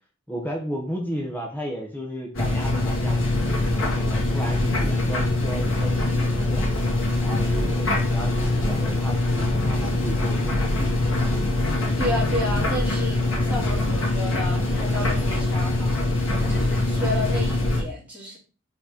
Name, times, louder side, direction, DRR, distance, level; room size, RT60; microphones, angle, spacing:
voice 1, 0.3-3.2 3.8-6.7 7.2-10.7, equal, 10° left, 0 dB, 1.1 m, -34 dB
sound 1, 2.3-17.8, left 2 dB, 70° left, 2.1 m, -23 dB
voice 2, 12.0-15.9 16.4-18.4, left 1 dB, 5° right, -5 dB, 3.1 m, -31 dB
5.0 x 4.4 x 5.0 m, 0.35 s
head